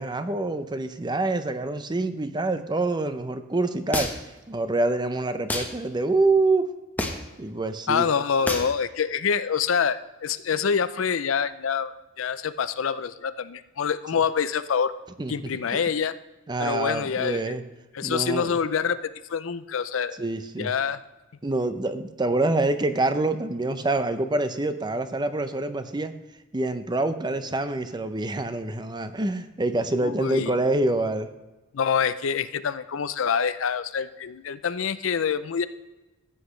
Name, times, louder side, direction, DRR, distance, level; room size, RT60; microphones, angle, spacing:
voice 1, 0.0-4.1 4.5-6.7 7.4-8.1 15.2-15.3 15.7-15.8 16.5-17.6 18.0-18.6 20.2-20.7 21.4-26.1 26.5-31.3, right 2 dB, 20° right, 10 dB, 0.6 m, -26 dB
sound 1, 3.9-4.4 5.5-5.7 7.0-7.3 8.5-8.7, left 1 dB, 10° left, 1.0 m, -28 dB
voice 2, 7.9-14.9 15.3-16.2 16.6-17.6 17.9-20.2 20.6-21.0 30.0-30.5 31.7-35.7, left 6 dB, 65° left, 13 dB, 0.5 m, -26 dB
15.0 x 8.2 x 3.2 m, 1.1 s
head